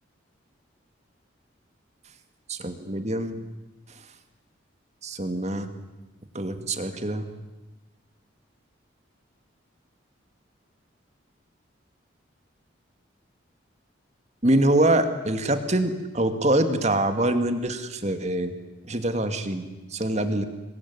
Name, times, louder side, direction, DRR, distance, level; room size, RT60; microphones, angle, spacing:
voice 1, 2.5-3.4 5.0-5.7 6.3-7.3 14.4-18.5 18.9-20.5, right 1 dB, 35° right, 8 dB, 2.3 m, -24 dB
28.0 x 22.0 x 9.8 m, 1.1 s
head